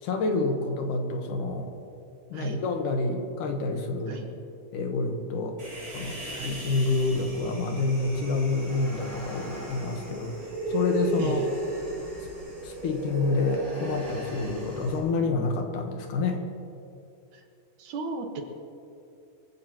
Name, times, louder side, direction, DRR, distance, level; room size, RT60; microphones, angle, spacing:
voice 1, 0.0-1.7 2.3-4.2 4.7-5.6 5.9-10.3 10.7-11.5 12.6-16.4, left 3 dB, 75° left, 4 dB, 2.7 m, -28 dB
Human voice, 5.6-15.0, right 1 dB, 20° right, 4.3 m, -35 dB
voice 2, 17.8-18.4, right 4 dB, 70° right, 3 dB, 2.8 m, -35 dB
23.5 x 15.0 x 3.0 m, 2.6 s
omnidirectional pair, 3.8 m